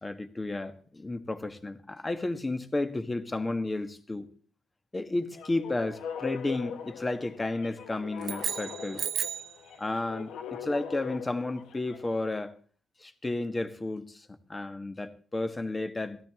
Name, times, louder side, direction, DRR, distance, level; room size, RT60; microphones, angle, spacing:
voice 1, 0.0-4.3 4.9-9.0 9.8-12.6 13.0-16.2, left 2 dB, 20° left, 1.5 m, -32 dB
sound 1, 5.3-12.2, left 7 dB, 80° left, 1.2 m, -41 dB
sound 2, 8.2-9.6, right 8 dB, 60° right, 1.1 m, -33 dB
17.0 x 14.0 x 3.7 m
cardioid pair, 90°, 0 cm